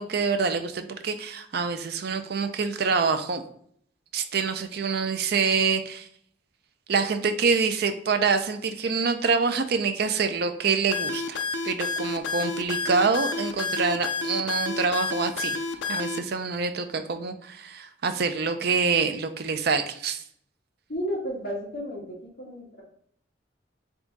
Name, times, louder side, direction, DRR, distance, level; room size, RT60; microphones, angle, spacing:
voice 1, 0.0-3.4 4.1-6.1 6.9-11.4 11.6-15.6 15.9-20.2, right 5 dB, 55° right, 8 dB, 0.4 m, -26 dB
sound 1, 10.9-16.2, left 4 dB, 75° left, 0.4 m, -30 dB
voice 2, 20.9-22.8, equal, 55° left, -3 dB, 1.5 m, -33 dB
3.6 x 3.5 x 3.9 m, 0.64 s
head